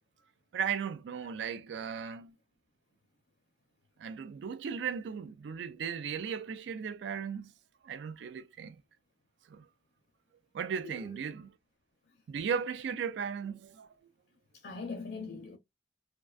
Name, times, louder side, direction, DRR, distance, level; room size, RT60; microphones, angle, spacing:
voice 1, 0.5-2.4 4.0-7.5 7.8-8.8 9.5-9.7 10.5-11.5 12.3-13.9, right 7 dB, 90° right, 0.3 m, -36 dB
voice 2, 10.8-11.3 14.5-15.6, left 4 dB, 60° left, 0.5 m, -42 dB
2.4 x 2.2 x 2.3 m
head